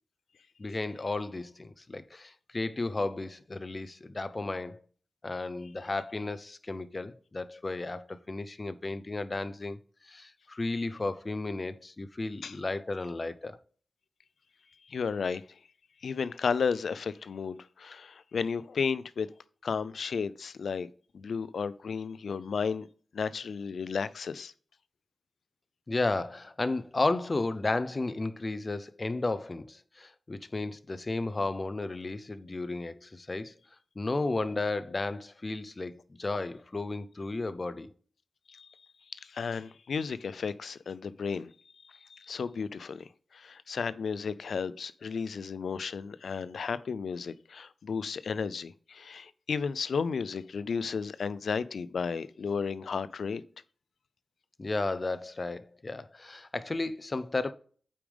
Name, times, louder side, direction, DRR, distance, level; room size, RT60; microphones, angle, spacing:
voice 1, 0.6-4.8 5.2-9.8 10.0-13.6 25.9-33.5 34.0-37.9 54.6-57.5, left 2 dB, 35° left, 0.6 m, -33 dB
voice 2, 14.8-15.6 16.0-19.3 19.6-20.9 21.1-22.9 23.1-24.5 38.5-38.9 39.1-41.5 41.8-53.4, left 5 dB, 80° left, 0.5 m, -33 dB
8.5 x 5.0 x 3.4 m
wide cardioid pair, 85°, 0 cm